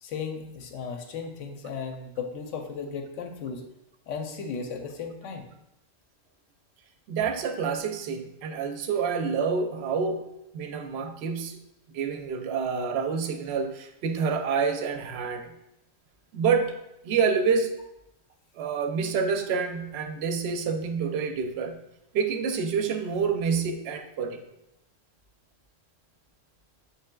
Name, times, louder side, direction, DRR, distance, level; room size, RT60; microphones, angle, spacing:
voice 1, 0.0-3.6 4.1-5.5, left 5 dB, 85° left, 4 dB, 1.0 m, -35 dB
voice 2, 7.1-11.6 11.9-15.5 16.3-16.8 17.0-17.7 18.6-21.8 22.1-24.4, right 5 dB, 65° right, 6 dB, 0.7 m, -28 dB
7.2 x 3.3 x 2.2 m, 0.85 s
omnidirectional pair, 1.3 m